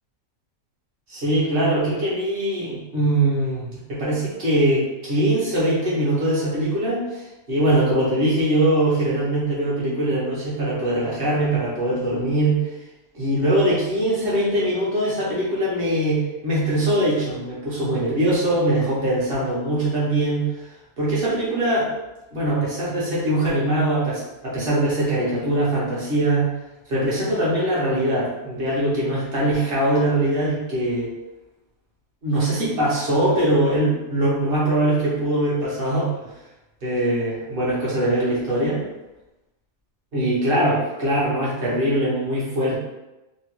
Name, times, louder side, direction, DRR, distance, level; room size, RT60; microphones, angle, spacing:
voice 1, 1.1-7.2 7.5-12.6 13.1-20.5 21.0-21.9 22.3-26.5 26.9-31.1 32.2-36.1 36.8-38.8 40.1-42.8, right 1 dB, 45° right, -7 dB, 1.2 m, -22 dB
3.1 x 2.2 x 3.1 m, 0.97 s
omnidirectional pair, 1.4 m